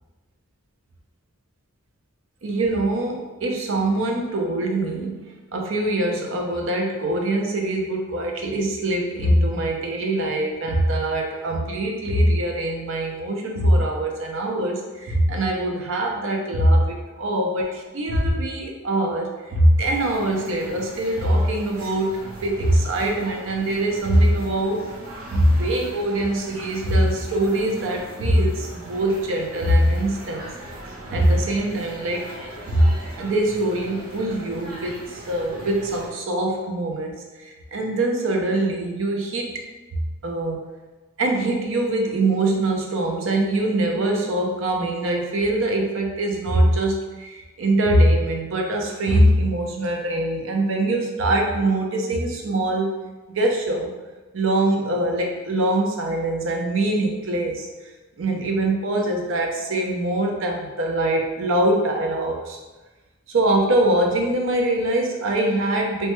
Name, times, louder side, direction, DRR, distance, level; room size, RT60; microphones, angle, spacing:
voice 1, 2.4-5.2 5.5-24.9 25.3-30.5 31.1-32.3 32.7-32.9 33.1-35.0 35.3-37.1 37.7-39.6 40.2-40.6 41.2-52.9 53.3-53.9 54.3-57.7 58.2-62.6 63.3-66.1, right 1 dB, 65° right, 1 dB, 0.5 m, -22 dB
sound 1, 19.8-36.1, right 1 dB, 90° right, 0.8 m, -40 dB
3.2 x 2.2 x 3.0 m, 1.2 s
head